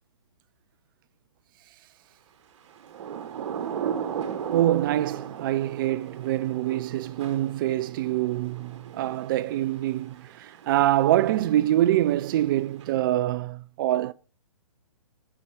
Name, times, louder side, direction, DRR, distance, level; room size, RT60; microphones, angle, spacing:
Thunder / Rain, 2.7-13.2, right 8 dB, 55° right, 1.3 m, -37 dB
voice 1, 4.5-14.1, right 13 dB, 35° right, 0.4 m, -25 dB
13.0 x 5.7 x 3.4 m
hypercardioid pair, 135°, 18 cm